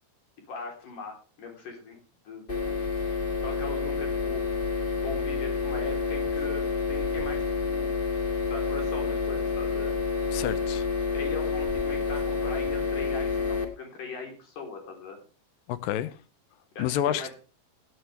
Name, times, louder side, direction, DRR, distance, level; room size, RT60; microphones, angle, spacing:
voice 1, 0.5-2.0 2.2-2.8 3.4-4.4 4.9-7.9 8.5-9.9 11.1-15.2 16.7-17.3, left 3 dB, 65° left, 5.1 m, -40 dB
sound 1, 2.5-13.7, left 5 dB, 25° left, 1.3 m, -29 dB
voice 2, 10.3-10.9 15.7-16.2 16.8-17.3, left 11 dB, 90° left, 2.5 m, -29 dB
18.0 x 9.5 x 3.3 m
omnidirectional pair, 4.0 m